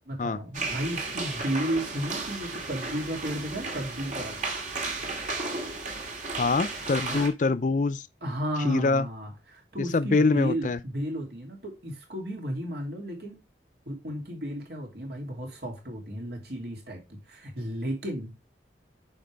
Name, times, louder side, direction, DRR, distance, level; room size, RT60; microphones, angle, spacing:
voice 1, 0.1-4.4 7.1-7.2 8.2-13.4 13.9-18.3, equal, 60° right, 2.8 m, -33 dB
sound 1, 0.5-7.3, right 3 dB, 40° right, 2.2 m, -34 dB
voice 2, 6.4-8.1 8.6-9.1 9.9-10.8, left 3 dB, 40° left, 0.4 m, -24 dB
8.8 x 5.4 x 3.3 m
head